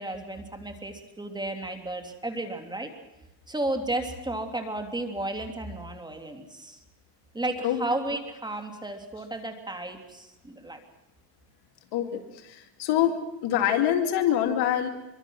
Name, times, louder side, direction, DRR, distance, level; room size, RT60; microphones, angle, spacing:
voice 1, 0.0-2.9 3.5-6.8 7.3-10.8, right 2 dB, 10° right, 5 dB, 3.0 m, -33 dB
voice 2, 11.9-13.1 13.4-14.9, left 11 dB, 55° left, 6 dB, 3.1 m, -25 dB
25.0 x 24.0 x 6.4 m, 0.95 s
supercardioid pair, 125°, 47 cm